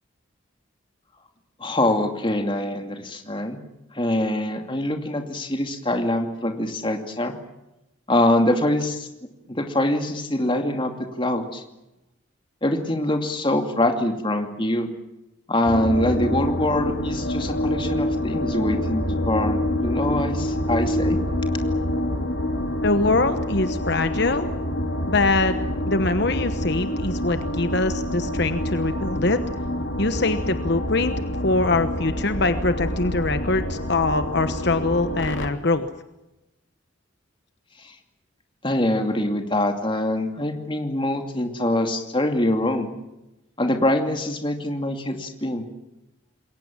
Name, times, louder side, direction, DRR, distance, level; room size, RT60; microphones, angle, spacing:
voice 1, 1.6-3.6 3.9-7.3 8.1-9.1 9.5-10.9 11.2-11.6 12.6-14.9 15.5-21.2 37.8-37.9 38.6-42.9 43.6-45.7, left 1 dB, 25° left, 5 dB, 2.6 m, -24 dB
sound 1, 15.6-35.5, left 1 dB, 75° left, 2.5 m, -27 dB
voice 2, 22.8-24.5 25.1-25.6 25.9-29.4 30.0-31.2 31.4-35.9, left 3 dB, 60° left, 9 dB, 1.1 m, -23 dB
27.5 x 22.0 x 7.4 m, 0.96 s
head